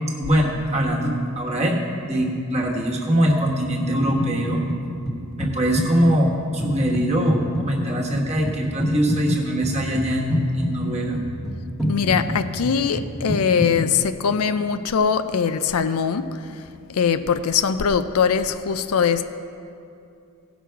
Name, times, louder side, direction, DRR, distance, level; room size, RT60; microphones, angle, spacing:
voice 1, 0.2-4.6 5.4-11.2, equal, 30° right, -1 dB, 1.3 m, -22 dB
sound 1, 4.2-4.8 5.1-13.9, equal, ahead, 1.2 m, -28 dB
voice 2, 11.9-16.3 16.9-19.2, left 6 dB, 75° left, 11 dB, 0.5 m, -21 dB
17.0 x 6.1 x 4.6 m, 2.5 s
head